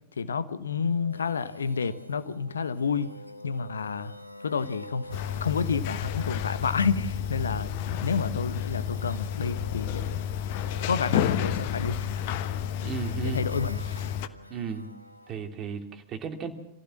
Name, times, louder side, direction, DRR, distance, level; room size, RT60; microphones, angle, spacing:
voice 1, 0.1-3.1 3.4-5.1 5.4-7.7 8.0-10.0 10.8-12.1 13.2-13.8, left 5 dB, 70° left, 1.0 m, -29 dB
sound 1, 0.8-15.5, left 1 dB, 90° right, 1.1 m, -47 dB
sound 2, 5.1-14.3, left 9 dB, 50° left, 1.2 m, -31 dB
voice 2, 12.8-13.4 14.5-14.9 15.3-16.5, right 6 dB, 30° right, 2.8 m, -34 dB
26.0 x 15.5 x 7.4 m
figure-of-eight pair, 90°, 0 cm